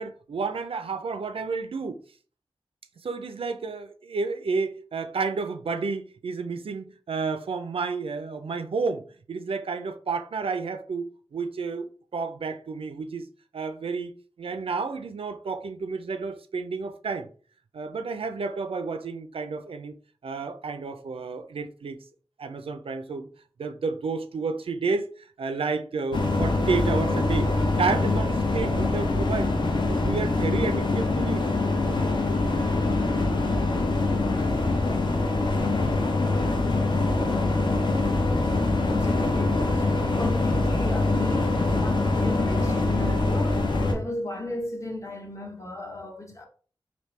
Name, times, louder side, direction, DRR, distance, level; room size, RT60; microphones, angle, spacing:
voice 1, 0.0-2.0 3.0-13.3 13.5-17.3 17.7-20.0 20.2-22.0 22.4-23.3 23.6-27.5 27.8-29.6 29.9-31.4 31.9-32.1 43.9-44.1, right 4 dB, 80° right, 0.4 m, -31 dB
sound 1, 26.1-43.9, left 2 dB, 55° left, 0.7 m, -24 dB
voice 2, 38.8-46.5, left 2 dB, 30° left, 0.9 m, -35 dB
3.4 x 2.6 x 3.1 m
wide cardioid pair, 65°, 10 cm